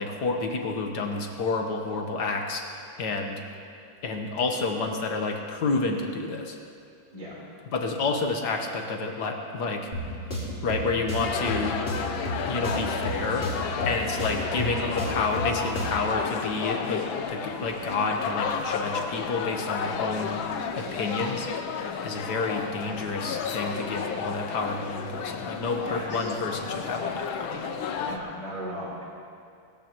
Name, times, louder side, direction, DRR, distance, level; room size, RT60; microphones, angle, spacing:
voice 1, 0.0-3.4 4.0-6.6 7.7-9.9 10.6-11.8 12.5-13.5 13.8-20.4 20.7-21.5 22.0-27.7, left 3 dB, 55° left, 3 dB, 1.8 m, -29 dB
sound 1, 9.9-16.1, equal, 30° left, 2.7 m, -33 dB
sound 2, 11.2-28.2, left 6 dB, 75° left, 1.6 m, -32 dB
voice 2, 19.9-20.6 25.7-26.3 28.0-29.0, equal, 60° right, -6 dB, 4.8 m, -38 dB
23.0 x 14.0 x 3.1 m, 2.4 s
omnidirectional pair, 2.2 m